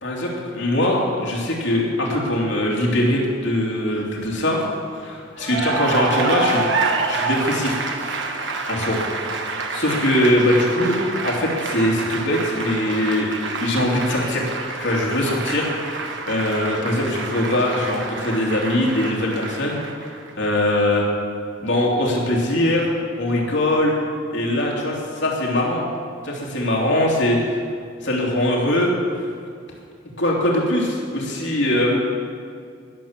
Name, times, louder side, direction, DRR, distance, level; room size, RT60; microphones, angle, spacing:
voice 1, 0.0-4.6 4.9-8.2 8.7-9.0 9.7-13.3 13.6-14.5 14.8-21.0 21.6-22.9 23.2-24.0 24.3-25.9 26.2-27.6 28.0-28.9 30.2-32.0, left 1 dB, 70° left, -2 dB, 2.9 m, -22 dB
Cheering / Applause, 5.4-20.3, right 3 dB, 70° right, 1.3 m, -27 dB
20.0 x 7.4 x 7.4 m, 2.2 s
head